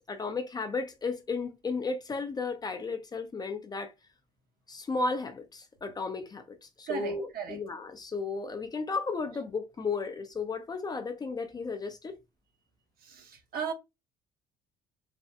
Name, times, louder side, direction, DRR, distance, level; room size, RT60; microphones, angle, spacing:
voice 1, 0.1-3.9 4.7-12.2, left 4 dB, 25° left, 0.4 m, -34 dB
voice 2, 6.9-7.6 13.0-13.7, right 7 dB, 60° right, 0.8 m, -36 dB
3.3 x 2.0 x 2.7 m
cardioid pair, 110°, 17 cm